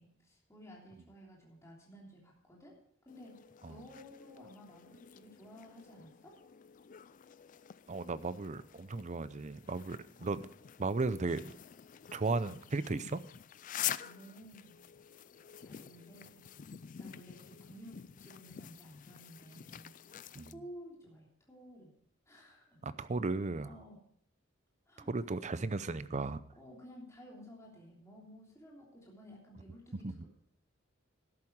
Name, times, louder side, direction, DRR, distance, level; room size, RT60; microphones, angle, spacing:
voice 1, 0.0-2.7 3.0-6.4 14.0-14.8 15.6-16.5 17.0-19.9 20.5-21.9 22.2-22.8 23.6-24.0 24.9-25.4 26.6-30.3, equal, 15° left, -3 dB, 3.2 m, -54 dB
sound 1, 3.1-20.5, left 11 dB, 40° left, 0.4 m, -47 dB
voice 2, 7.9-10.5 10.8-11.5 12.1-13.2 20.4-20.5 22.8-23.7 25.1-26.4 30.0-30.1, right 3 dB, 35° right, 15 dB, 0.6 m, -35 dB
12.5 x 11.0 x 4.7 m, 0.64 s
head